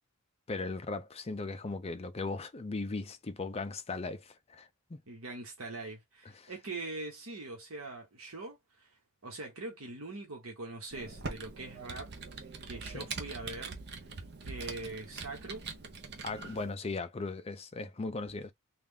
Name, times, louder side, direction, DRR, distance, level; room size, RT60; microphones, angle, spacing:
voice 1, 0.5-5.0 6.4-6.5 12.9-13.1 16.2-18.5, left 3 dB, 30° left, 0.5 m, -38 dB
voice 2, 5.1-8.9 9.2-12.1 12.7-13.8 14.4-15.6, right 2 dB, 70° right, 1.2 m, -42 dB
Computer keyboard, 10.9-16.7, right 4 dB, 50° right, 0.7 m, -43 dB
3.3 x 2.4 x 3.5 m
head